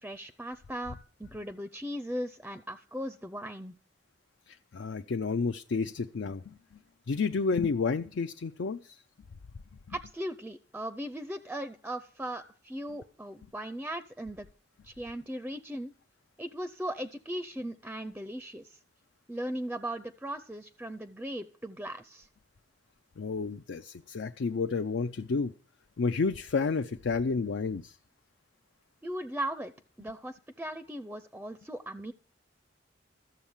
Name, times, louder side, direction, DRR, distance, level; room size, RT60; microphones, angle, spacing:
voice 1, 0.0-3.7 9.9-14.5 14.8-15.9 16.4-18.8 19.3-22.3 29.0-29.7 30.0-32.1, right 1 dB, 10° right, 11 dB, 0.5 m, -38 dB
voice 2, 4.5-6.8 7.1-9.0 23.2-25.5 26.0-28.0, left 4 dB, 70° left, 9 dB, 0.5 m, -31 dB
13.5 x 7.2 x 7.1 m, 0.43 s
head